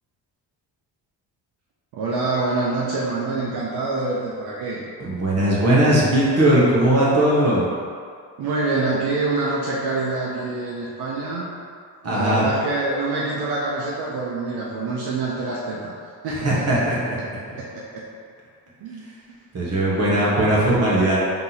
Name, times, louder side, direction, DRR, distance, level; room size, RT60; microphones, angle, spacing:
voice 1, 1.9-4.8 8.4-11.5 12.0-15.9 16.2-16.8 17.6-18.1 18.8-19.0, right 3 dB, 75° right, -5 dB, 0.7 m, -26 dB
voice 2, 5.0-7.7 12.0-12.4 16.4-17.2 19.5-21.2, right 1 dB, 40° right, -6 dB, 1.2 m, -19 dB
3.6 x 2.9 x 4.0 m, 2.1 s
cardioid pair, 105°, 39 cm